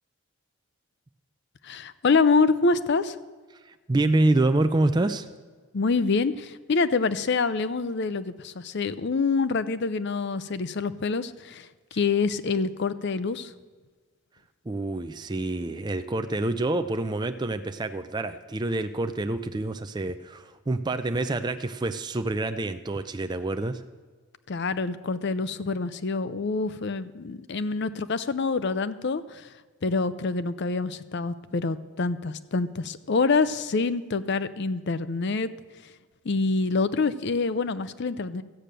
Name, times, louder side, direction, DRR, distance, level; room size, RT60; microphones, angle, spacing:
voice 1, 1.6-3.2 5.7-13.5 24.5-29.5 29.8-35.5 36.2-38.4, left 4 dB, 50° left, 14 dB, 0.5 m, -26 dB
voice 2, 3.5-5.3 14.7-23.8, right 2 dB, 20° right, 8 dB, 0.4 m, -27 dB
13.5 x 8.9 x 6.7 m, 1.4 s
head